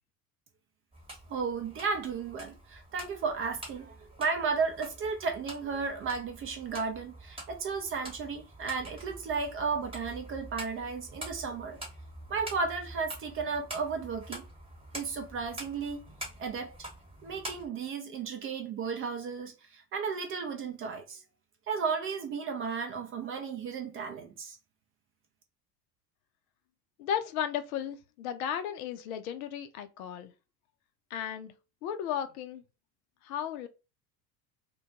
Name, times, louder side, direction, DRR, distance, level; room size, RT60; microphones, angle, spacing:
sound 1, 0.9-17.7, right 1 dB, 10° right, 1.0 m, -46 dB
voice 1, 1.3-11.8 12.3-14.4 14.9-16.0 16.4-16.7 17.2-21.2 21.7-24.6, right 5 dB, 30° right, 0.5 m, -34 dB
voice 2, 27.0-30.3 31.1-31.5 31.8-32.6 33.2-33.7, left 9 dB, 60° left, 0.5 m, -35 dB
2.2 x 2.2 x 2.7 m
figure-of-eight pair, 70°, 49 cm